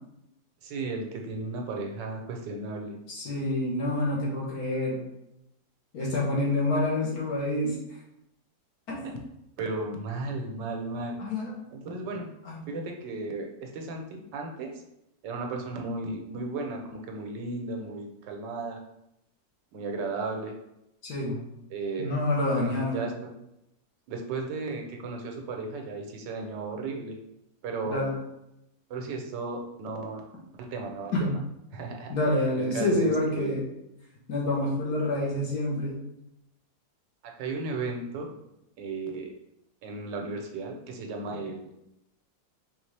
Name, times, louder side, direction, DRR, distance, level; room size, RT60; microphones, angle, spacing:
voice 1, 0.6-3.0 9.0-9.1 9.6-11.2 11.7-12.3 12.7-14.8 15.2-18.8 19.7-20.6 21.7-22.1 22.5-23.1 24.1-27.2 27.6-28.1 28.9-30.2 30.6-31.4 31.7-33.6 37.2-38.3 38.8-39.3 39.8-41.7, right 3 dB, 80° right, 2 dB, 1.4 m, -35 dB
voice 2, 3.1-5.0 5.9-7.7 8.9-9.2 11.2-11.5 12.4-12.7 21.0-21.4 22.0-23.0 27.8-28.2 31.1-31.4 32.1-33.7 34.3-36.0, left 1 dB, 60° left, -4 dB, 1.7 m, -27 dB
4.2 x 3.5 x 3.3 m, 0.84 s
omnidirectional pair, 1.9 m